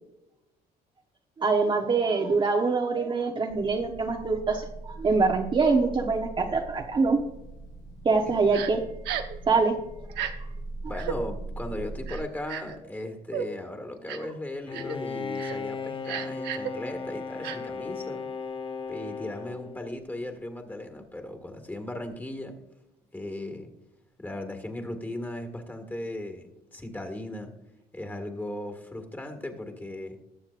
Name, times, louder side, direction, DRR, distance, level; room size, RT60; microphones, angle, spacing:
voice 1, 1.4-7.2 8.0-8.8 9.5-9.7, right 4 dB, 30° right, 2 dB, 1.0 m, -24 dB
sound 1, 3.5-12.2, right 2 dB, 85° left, 3.6 m, -41 dB
Crying sobbing, 8.5-8.7 9.0-9.4 10.1-10.3 10.9-11.2 12.1-12.8 13.3-13.5 14.1-14.3 14.7-15.0 15.4-15.6 16.0-16.7 17.4-17.6, right 9 dB, 85° right, 0.9 m, -33 dB
voice 2, 10.9-18.3 18.9-22.6 23.1-23.7 24.2-27.5 27.9-30.2, left 1 dB, 10° left, 5 dB, 1.8 m, -37 dB
Bowed string instrument, 14.7-20.2, left 4 dB, 30° left, 0.9 m, -36 dB
20.0 x 7.2 x 2.5 m, 0.96 s
cardioid pair, 110°, 17 cm